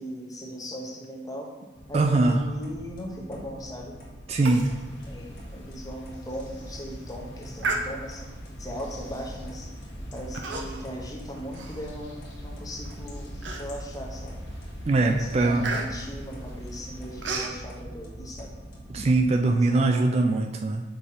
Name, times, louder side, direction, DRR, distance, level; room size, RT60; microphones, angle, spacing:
voice 1, 0.0-1.5 1.9-4.0 5.1-8.3 8.6-9.7 10.1-14.4 15.1-18.5 19.4-20.2, equal, 20° left, 0 dB, 0.9 m, -38 dB
sound 1, 1.7-19.1, equal, 50° left, 1.2 m, -44 dB
voice 2, 1.9-2.4 4.3-4.7 14.9-15.7 18.9-20.8, right 2 dB, 35° right, 4 dB, 0.3 m, -22 dB
sound 2, 4.5-17.4, equal, 75° left, 1.2 m, -42 dB
Human voice, 4.5-4.8 5.1-5.2 5.7-5.8 6.4-6.6 7.6-8.3 9.1-9.3 10.3-11.0 11.3-12.4 12.8-12.9 13.4-14.0 14.5-14.7 15.0-17.6, right 3 dB, 85° right, 0.7 m, -34 dB
5.5 x 5.0 x 4.2 m, 1.2 s
head